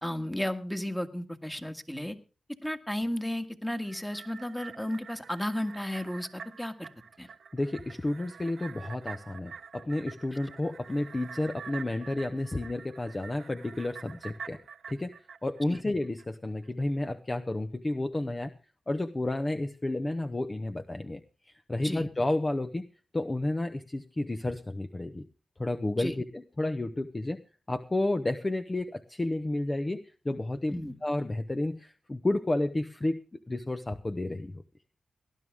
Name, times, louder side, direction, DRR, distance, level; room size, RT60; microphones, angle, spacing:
voice 1, 0.0-2.2 2.6-6.9 7.2-7.3 15.7-15.8 21.8-22.1 26.0-26.2 30.7-31.0, left 1 dB, 10° left, 8 dB, 1.8 m, -34 dB
sound 1, 3.8-16.3 16.6-16.7, right 6 dB, 75° right, 1.0 m, -47 dB
voice 2, 7.5-14.6 14.9-15.1 15.4-18.5 18.9-21.2 21.7-22.8 23.1-25.3 25.6-27.4 27.7-30.8 31.0-33.2 33.5-34.6, left 2 dB, 30° left, 7 dB, 0.9 m, -31 dB
19.0 x 11.0 x 3.6 m, 0.33 s
cardioid pair, 55°, 0 cm